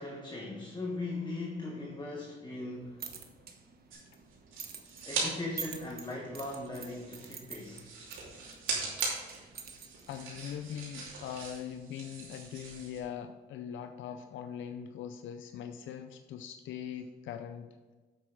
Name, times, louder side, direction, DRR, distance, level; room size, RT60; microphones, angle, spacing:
voice 1, 0.0-3.1 5.0-7.9, left 2 dB, 20° left, -1 dB, 1.4 m, -39 dB
sound 1, 2.7-10.8, right 7 dB, 50° right, 1.1 m, -47 dB
sound 2, 3.9-5.3 5.6-13.0, right 4 dB, 80° right, 2.8 m, -40 dB
voice 2, 10.1-17.7, left 9 dB, 75° left, 7 dB, 0.5 m, -41 dB
8.3 x 6.1 x 4.7 m, 1.3 s
cardioid pair, 90°, 20 cm